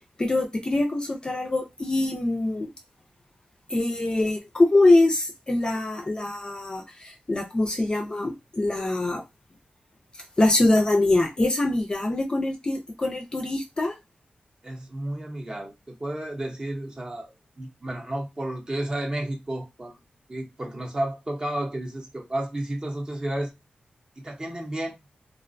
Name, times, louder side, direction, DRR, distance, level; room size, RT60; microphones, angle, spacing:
voice 1, 0.2-2.7 3.7-9.2 10.4-14.0, left 2 dB, 30° left, 0.4 m, -23 dB
voice 2, 14.6-17.3 17.6-20.0 20.3-23.5 24.2-25.0, right 1 dB, 25° right, 0.7 m, -32 dB
2.4 x 2.1 x 2.5 m
wide cardioid pair, 120°, 3 cm